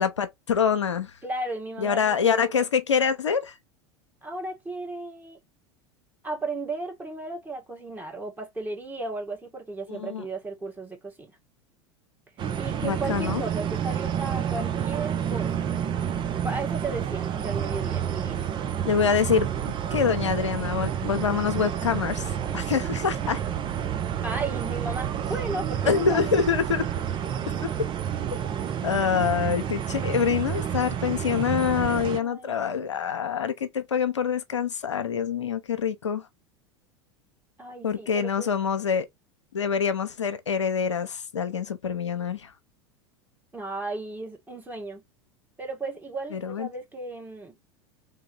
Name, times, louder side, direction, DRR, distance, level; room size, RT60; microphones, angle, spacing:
voice 1, 0.0-1.1 1.8-3.5 9.9-10.2 12.8-13.4 18.9-19.5 19.9-23.4 25.9-26.9 27.6-27.7 28.8-36.3 37.8-39.1 39.5-42.5 46.3-46.7, left 6 dB, 80° left, 0.6 m, -25 dB
voice 2, 1.2-2.7 4.2-5.4 6.2-11.4 12.6-15.7 16.4-18.5 24.1-26.4 32.2-33.0 37.6-38.5 43.5-45.0 45.6-47.6, right 2 dB, 10° right, 1.9 m, -35 dB
sound 1, 12.4-32.2, right 9 dB, 35° right, 0.8 m, -29 dB
3.7 x 3.4 x 3.6 m
figure-of-eight pair, 80°, 15 cm